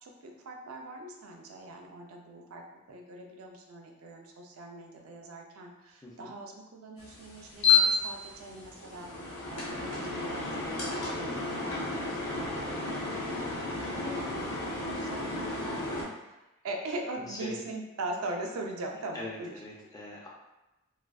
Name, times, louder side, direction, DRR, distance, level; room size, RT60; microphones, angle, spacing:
voice 1, 0.0-11.9 12.3-16.4 16.6-19.6, right 2 dB, 85° right, 1 dB, 0.4 m, -41 dB
sound 1, 7.0-16.0, left 4 dB, 80° left, 0.6 m, -31 dB
voice 2, 13.8-14.2 17.2-17.6 19.1-20.3, left 1 dB, 15° left, -4 dB, 0.3 m, -43 dB
2.4 x 2.2 x 2.2 m, 0.98 s
head